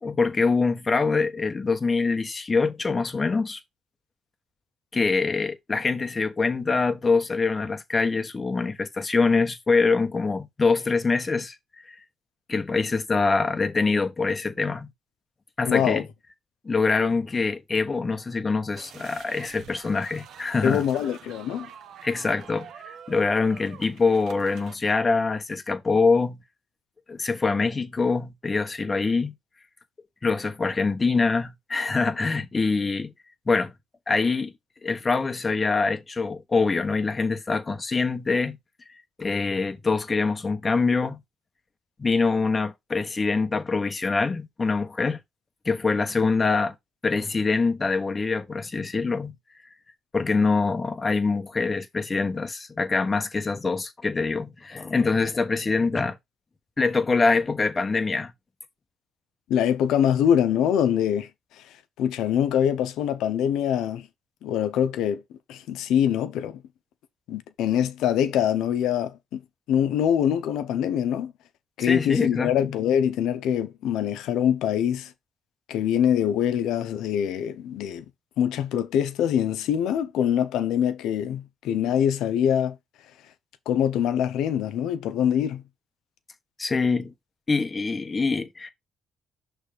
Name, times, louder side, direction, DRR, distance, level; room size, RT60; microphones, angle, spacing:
voice 1, 0.0-3.6 4.9-11.9 12.5-14.9 15.6-16.1 16.6-20.8 22.0-26.4 27.1-29.3 30.2-33.1 33.5-33.7 34.1-34.5 34.8-38.6 39.2-41.2 42.0-45.2 45.6-46.7 47.0-49.3 50.1-56.2 56.8-58.3 71.8-72.7 86.6-87.1 87.5-88.7, left 4 dB, 30° left, 1.1 m, -24 dB
voice 2, 15.6-16.0 20.6-21.7 59.5-61.3 62.0-64.1 64.4-65.2 65.5-66.6 67.3-69.4 69.7-71.3 71.8-75.1 75.7-78.0 78.4-82.8 83.7-85.6, left 9 dB, 90° left, 0.8 m, -24 dB
sound 1, 18.8-24.7, right 8 dB, 75° right, 1.0 m, -46 dB
6.3 x 3.4 x 5.1 m
cardioid pair, 90°, 0 cm